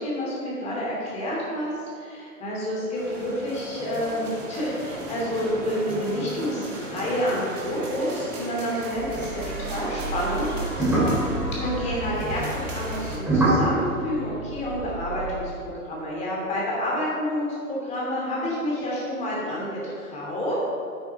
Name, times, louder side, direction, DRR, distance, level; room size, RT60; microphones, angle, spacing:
voice 1, 0.0-11.0 11.5-15.5 15.9-20.6, equal, 15° left, -5 dB, 2.6 m, -29 dB
sound 1, 2.9-13.2, right 1 dB, 55° right, 2.2 m, -36 dB
sound 2, 9.0-15.5, right 2 dB, 5° right, 2.4 m, -27 dB
8.6 x 8.6 x 4.6 m, 2.4 s
figure-of-eight pair, 120°, 44 cm